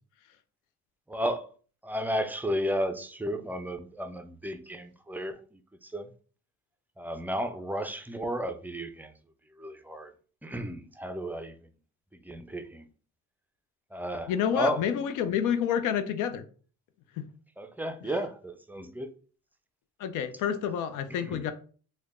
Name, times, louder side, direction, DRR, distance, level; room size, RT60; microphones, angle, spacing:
voice 1, 1.1-1.5 1.8-6.1 7.0-9.1 9.6-10.1 10.4-11.7 12.1-12.9 13.9-14.9 17.6-19.1 21.1-21.4, equal, 5° right, 0.4 m, -33 dB
voice 2, 14.3-16.4 20.0-21.5, left 8 dB, 85° left, 0.5 m, -28 dB
3.3 x 2.2 x 3.6 m
cardioid pair, 90°, 30 cm